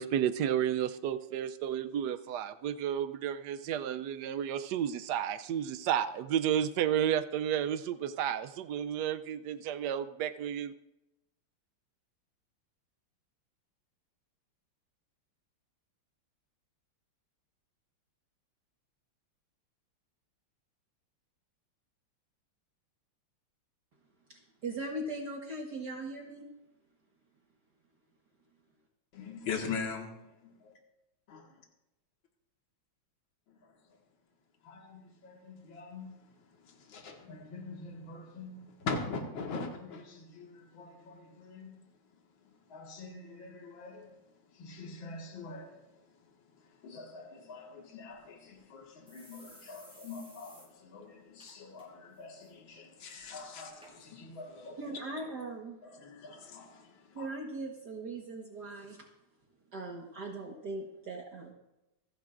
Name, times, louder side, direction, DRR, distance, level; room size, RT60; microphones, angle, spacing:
voice 1, 0.0-10.7, right 9 dB, 80° right, 11 dB, 0.9 m, -32 dB
voice 2, 24.3-26.5 54.8-55.8 57.2-59.1 59.7-61.5, right 2 dB, 50° right, 0 dB, 1.8 m, -40 dB
voice 3, 29.1-30.2 30.4-30.7 31.3-31.5 34.6-36.1 36.6-41.7 42.7-44.1 44.6-45.7 46.8-54.8 55.9-57.3, left 4 dB, 65° left, 1 dB, 2.5 m, -42 dB
sound 1, 48.1-48.2 48.5-48.6 49.1-50.7 51.0-51.1 51.4-51.8 52.2-52.5 53.2-53.3 53.8-53.9 54.6-54.7, equal, ahead, 5.8 m, -56 dB
28.0 x 10.5 x 2.5 m, 0.92 s
omnidirectional pair, 2.4 m